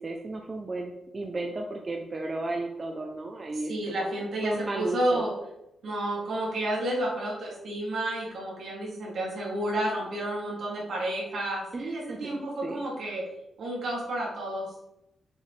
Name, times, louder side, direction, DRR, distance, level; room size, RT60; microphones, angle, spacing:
voice 1, 0.0-4.1 4.4-5.2 11.7-12.8, right 2 dB, 30° right, 2 dB, 0.6 m, -34 dB
voice 2, 3.7-5.3 5.8-13.2 13.6-14.6, right 1 dB, 65° right, -4 dB, 2.5 m, -31 dB
6.9 x 4.7 x 3.3 m, 0.87 s
cardioid pair, 125°, 0 cm